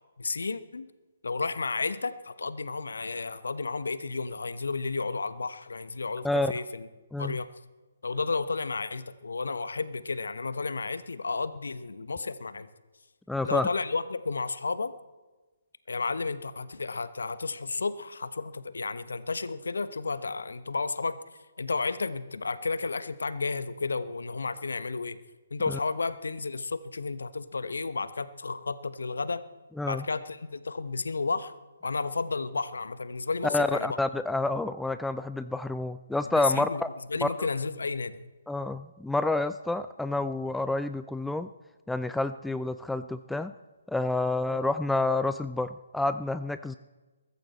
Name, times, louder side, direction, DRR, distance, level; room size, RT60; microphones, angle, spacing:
voice 1, 0.2-0.9 1.2-6.9 7.2-7.5 8.0-12.7 13.4-14.9 15.9-21.1 21.6-25.2 25.5-29.4 29.9-31.5 31.8-34.0 36.4-36.8 37.1-38.2, left 4 dB, 70° left, 13 dB, 1.1 m, -32 dB
voice 2, 13.3-13.7 25.7-25.8 29.8-30.0 33.4-36.9 37.2-37.5 38.5-41.5 41.9-43.5 43.9-46.7, left 2 dB, 5° left, 11 dB, 0.4 m, -29 dB
22.0 x 14.0 x 4.2 m, 1.3 s
figure-of-eight pair, 135°, 0 cm